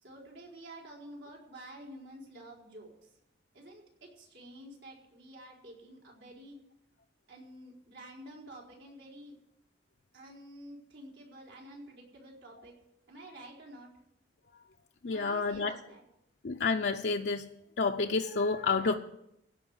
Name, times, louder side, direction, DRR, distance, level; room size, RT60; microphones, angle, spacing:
voice 1, 0.0-2.9 3.5-6.6 7.3-9.4 10.1-12.7 13.1-13.9 15.1-16.0, right 1 dB, 75° right, -2 dB, 4.3 m, -50 dB
voice 2, 15.0-15.7 16.4-17.4 17.8-18.9, left 4 dB, 65° left, 2 dB, 0.6 m, -29 dB
16.0 x 5.5 x 9.5 m, 0.81 s
head